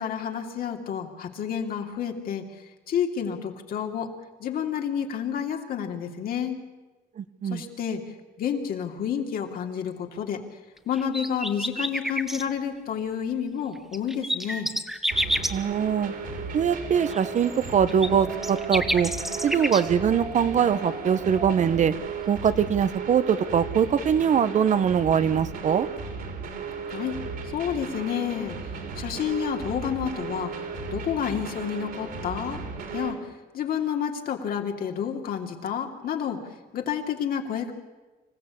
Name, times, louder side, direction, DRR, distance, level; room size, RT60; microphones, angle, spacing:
voice 1, 0.0-2.5 2.9-4.1 4.4-6.6 7.5-8.0 8.4-10.4 10.9-14.7 26.9-27.2 27.5-28.6 29.0-30.5 30.9-32.6 32.9-33.3 33.5-36.4 36.7-37.7, left 8 dB, 60° left, 3 dB, 2.8 m, -29 dB
voice 2, 7.2-7.6 15.5-16.1 16.5-19.1 19.4-21.9 22.3-25.9, right 8 dB, 45° right, 13 dB, 1.0 m, -22 dB
sound 1, 10.9-12.4 13.8-15.5 17.1-19.8 22.5-22.6, equal, ahead, 1.6 m, -29 dB
sound 2, 15.1-33.1, right 4 dB, 60° right, 4.4 m, -36 dB
Wind, 16.4-22.4, right 3 dB, 25° right, 2.6 m, -41 dB
26.5 x 15.0 x 8.5 m, 1.2 s
cardioid pair, 110°, 17 cm